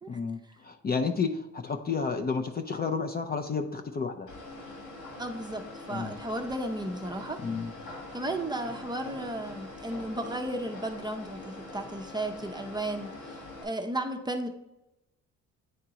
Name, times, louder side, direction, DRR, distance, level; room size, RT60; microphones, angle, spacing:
voice 1, 0.1-4.3 5.9-6.2 7.4-7.7, left 5 dB, 30° left, 5 dB, 0.5 m, -31 dB
sound 1, 4.3-13.6, left 2 dB, 85° left, 2.3 m, -43 dB
voice 2, 5.2-7.4 8.1-14.5, right 1 dB, 15° right, 5 dB, 0.6 m, -34 dB
9.2 x 3.7 x 2.9 m, 0.94 s
cardioid pair, 90°, 30 cm